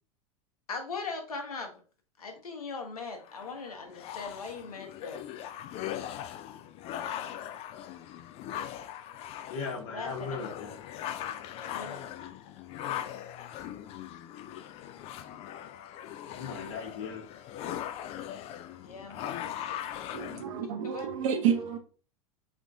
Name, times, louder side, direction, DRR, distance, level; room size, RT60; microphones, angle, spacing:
voice 1, 0.7-1.8 2.2-5.3 9.9-10.4 11.6-12.1 18.8-19.9 20.6-21.4, left 4 dB, 80° left, 1.0 m, -40 dB
sound 1, 3.2-20.4, left 11 dB, 35° left, 0.3 m, -40 dB
voice 2, 9.5-10.8 16.4-17.2, left 5 dB, 60° left, 1.2 m, -37 dB
voice 3, 20.1-21.8, right 8 dB, 60° right, 0.9 m, -29 dB
3.6 x 2.5 x 3.5 m
hypercardioid pair, 90°, 19 cm